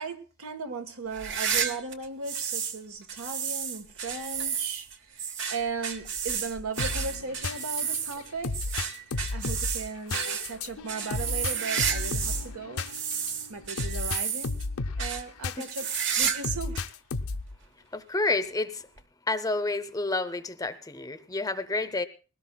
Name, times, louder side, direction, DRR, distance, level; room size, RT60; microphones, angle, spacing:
voice 1, 0.0-8.5 9.3-12.9 13.5-14.6 15.0-16.8, right 4 dB, 85° right, 1.3 m, -37 dB
sound 1, 1.1-2.8 3.1-12.5 12.8-14.6 15.0-15.2 15.6-16.5 16.7-16.8 17.6-17.7 19.0-19.1, right 7 dB, 60° right, 1.1 m, -31 dB
sound 2, 6.8-16.0 16.4-17.6, left 3 dB, 85° left, 0.6 m, -34 dB
voice 2, 17.9-18.9 19.3-22.0, left 2 dB, 15° left, 0.6 m, -29 dB
20.5 x 17.5 x 2.3 m
head